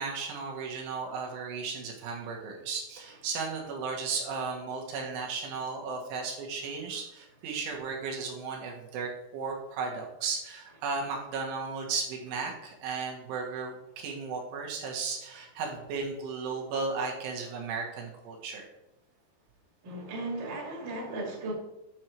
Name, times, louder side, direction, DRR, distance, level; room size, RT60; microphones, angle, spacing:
voice 1, 0.0-18.7, right 4 dB, 75° right, 0 dB, 3.9 m, -35 dB
voice 2, 19.8-21.5, right 2 dB, 35° right, -1 dB, 1.9 m, -36 dB
9.4 x 6.4 x 4.5 m, 0.93 s
omnidirectional pair, 5.7 m